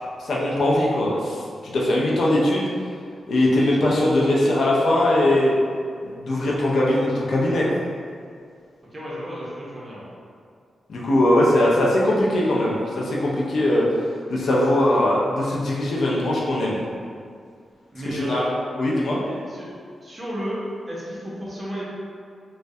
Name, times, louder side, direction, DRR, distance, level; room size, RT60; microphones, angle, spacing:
voice 1, 0.2-2.7 3.3-5.5 6.0-7.7 10.9-13.9 14.3-16.8 18.1-18.4 18.8-19.2, left 1 dB, 65° left, -5 dB, 0.4 m, -20 dB
voice 2, 8.9-10.1 17.9-18.5 19.2-21.8, equal, 20° right, -7 dB, 0.6 m, -33 dB
2.3 x 2.1 x 2.6 m, 2.2 s
wide cardioid pair, 140°, 0 cm